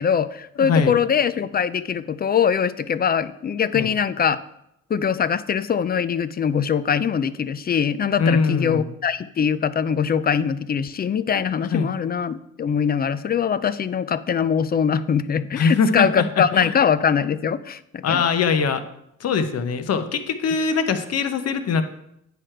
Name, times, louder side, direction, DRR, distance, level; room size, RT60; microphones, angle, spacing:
voice 1, 0.0-4.4 4.9-18.3, left 7 dB, 30° left, 14 dB, 0.4 m, -22 dB
voice 2, 0.6-1.0 3.7-3.9 8.2-8.9 11.7-11.9 15.5-16.7 18.0-18.8 19.2-21.8, left 5 dB, 55° left, 8 dB, 0.9 m, -22 dB
9.5 x 5.0 x 4.4 m, 0.78 s
cardioid pair, 90°, 30 cm